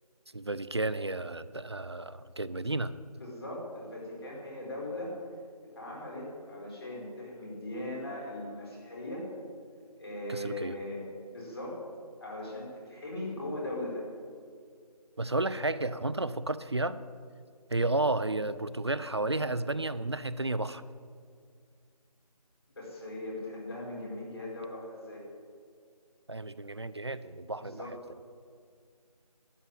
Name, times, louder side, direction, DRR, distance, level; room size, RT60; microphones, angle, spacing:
voice 1, 0.3-2.9 10.3-10.8 15.2-17.0 17.7-20.8 26.3-28.0, right 2 dB, 45° right, 15 dB, 0.5 m, -32 dB
voice 2, 3.2-5.1 5.6-9.3 10.0-11.8 12.2-14.1 22.8-25.2 27.6-27.9, left 1 dB, 40° left, -3 dB, 4.6 m, -39 dB
12.5 x 8.2 x 9.1 m, 2.1 s
figure-of-eight pair, 170°, 20 cm